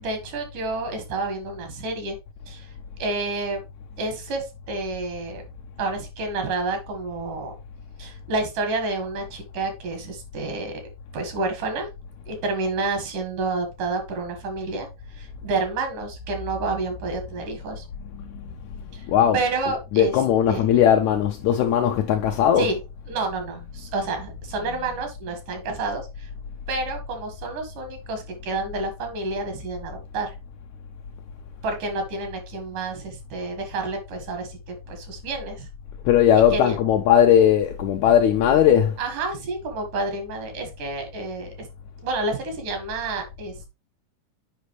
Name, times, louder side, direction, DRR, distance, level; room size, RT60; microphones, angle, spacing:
voice 1, 0.0-2.2 2.5-2.7 3.0-3.6 4.0-5.4 5.8-7.5 8.0-10.8 11.1-11.9 12.3-17.8 18.9-19.1 19.3-20.1 20.5-20.6 22.6-22.8 23.1-26.3 26.7-30.3 31.6-35.7 36.5-36.8 39.0-41.7 42.0-43.7, right 3 dB, 75° right, 3.3 m, -29 dB
voice 2, 19.1-22.7 36.1-39.0, left 9 dB, 80° left, 1.8 m, -19 dB
8.2 x 5.2 x 3.2 m
omnidirectional pair, 3.8 m